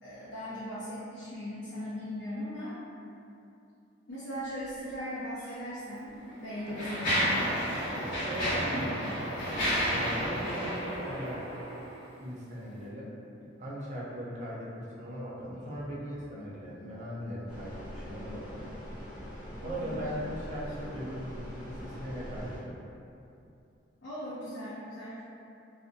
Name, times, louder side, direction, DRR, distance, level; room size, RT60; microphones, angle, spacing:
voice 1, 0.0-2.7 4.1-6.1 6.4-7.5 8.7-9.0 19.6-20.1 24.0-25.2, equal, 65° left, -11 dB, 0.5 m, -39 dB
Mechanisms, 5.4-5.5 6.3-12.0, equal, 45° left, 1.0 m, -31 dB
voice 2, 8.2-9.0 9.9-11.5 12.2-13.1 13.6-18.7 19.6-22.8, equal, 40° right, -7 dB, 0.5 m, -39 dB
sound 1, 17.5-22.6, equal, 5° right, 0.7 m, -42 dB
2.6 x 2.1 x 2.5 m, 2.6 s
head